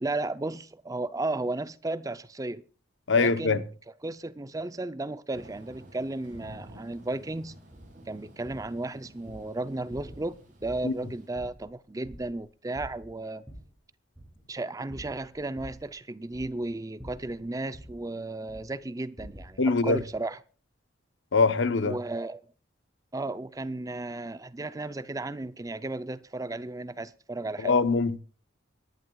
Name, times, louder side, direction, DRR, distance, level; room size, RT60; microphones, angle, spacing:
voice 1, 0.0-2.6 3.1-3.6 4.0-7.6 8.1-13.4 14.5-20.4 21.8-22.4 23.1-27.7, right 2 dB, 15° right, 0.5 m, -34 dB
voice 2, 3.1-3.6 10.8-10.9 19.6-20.0 21.3-22.0 27.6-28.2, left 4 dB, 70° left, 0.9 m, -23 dB
Thunder / Rain, 5.3-11.3, equal, 45° right, 6.1 m, -51 dB
sound 1, 7.7-7.9 8.5-8.8 9.2-9.5 9.9-10.3 10.6-10.9 11.4-12.5 12.7-13.7 14.2-14.4 14.9-15.9 16.3-16.7 17.0-18.0 18.5-18.8 19.2-19.6 19.9-20.2, equal, ahead, 7.8 m, -47 dB
24.5 x 11.0 x 2.3 m
head